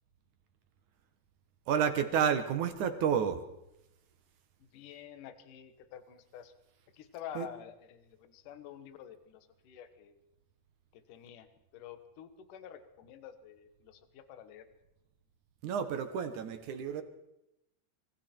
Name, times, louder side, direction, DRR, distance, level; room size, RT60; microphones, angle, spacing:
voice 1, 1.7-3.4 7.4-7.5 15.6-17.0, right 7 dB, 60° right, 8 dB, 2.2 m, -30 dB
voice 2, 4.6-6.5 6.9-10.2 10.9-14.7, left 9 dB, 60° left, 10 dB, 2.5 m, -49 dB
25.5 x 25.0 x 4.5 m, 0.88 s
omnidirectional pair, 4.9 m